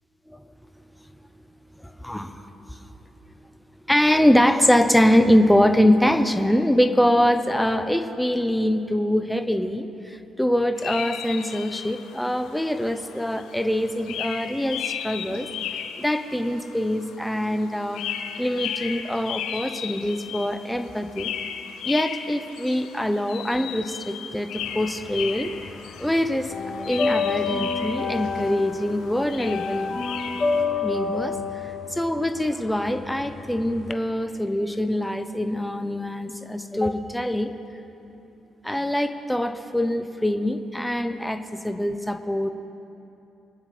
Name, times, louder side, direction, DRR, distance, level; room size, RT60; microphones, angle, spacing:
voice 1, 0.3-15.5 16.0-18.1 18.4-21.3 21.8-25.5 26.0-26.5 26.8-30.0 30.8-37.5 38.6-42.5, left 1 dB, 5° left, 8 dB, 0.7 m, -24 dB
sound 1, 10.8-30.6, left 8 dB, 90° left, 0.7 m, -36 dB
sound 2, 24.6-25.8 26.0-33.9, left 4 dB, 35° left, 0.6 m, -28 dB
23.5 x 9.4 x 3.3 m, 2.9 s
cardioid pair, 90°, 0 cm